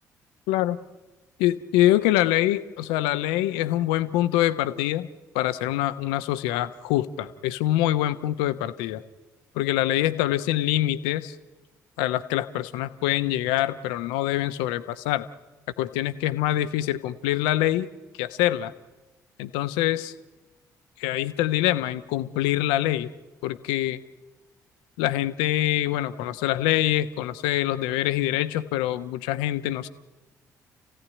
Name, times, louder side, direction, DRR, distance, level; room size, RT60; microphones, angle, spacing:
voice 1, 0.5-0.8 1.4-5.1 5.3-9.0 9.6-11.3 12.0-15.3 15.8-17.9 18.2-18.7 19.4-20.1 21.0-23.1 23.4-24.0 25.0-29.9, left 14 dB, 70° left, 12 dB, 0.9 m, -25 dB
30.0 x 15.5 x 9.6 m, 1.2 s
figure-of-eight pair, 45°, 9 cm